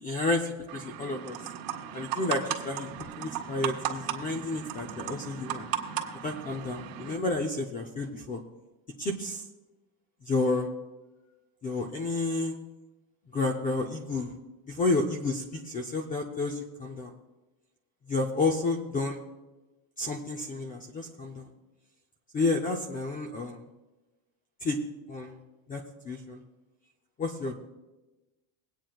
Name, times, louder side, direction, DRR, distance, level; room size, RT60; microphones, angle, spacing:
voice 1, 0.0-1.4 1.9-5.7 6.2-8.4 9.0-9.4 10.2-10.7 11.6-12.5 13.3-14.3 14.7-17.1 18.1-19.2 20.0-21.5 22.3-23.6 24.6-24.8 25.1-25.4 25.7-26.4 27.2-27.5, left 3 dB, 20° left, 3 dB, 0.5 m, -31 dB
sound 1, 0.7-7.2, right 10 dB, 65° right, 1.6 m, -36 dB
23.0 x 9.1 x 2.3 m, 1.1 s
cardioid pair, 175°, 47 cm